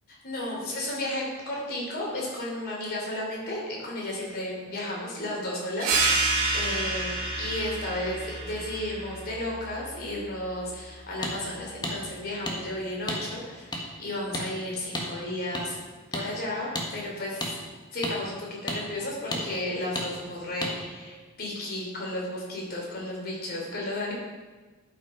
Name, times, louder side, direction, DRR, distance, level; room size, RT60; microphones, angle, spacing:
voice 1, 0.1-6.3 6.5-15.8 16.1-17.6 17.9-24.1, left 1 dB, 50° left, -3 dB, 3.1 m, -33 dB
sound 1, 5.8-11.0, right 3 dB, 80° right, 2.0 m, -29 dB
sound 2, 11.2-11.3 11.8-12.0 12.5-12.6 13.1-13.2 13.7-13.8 14.3-14.5 14.9-15.1 15.5-15.6 16.1-16.3 16.7-16.9 17.4-17.5 18.0-18.2 18.7-18.8 19.3-19.4 20.0-20.1 20.6-20.7, left 1 dB, 20° left, 1.3 m, -30 dB
12.0 x 5.6 x 4.8 m, 1.3 s
head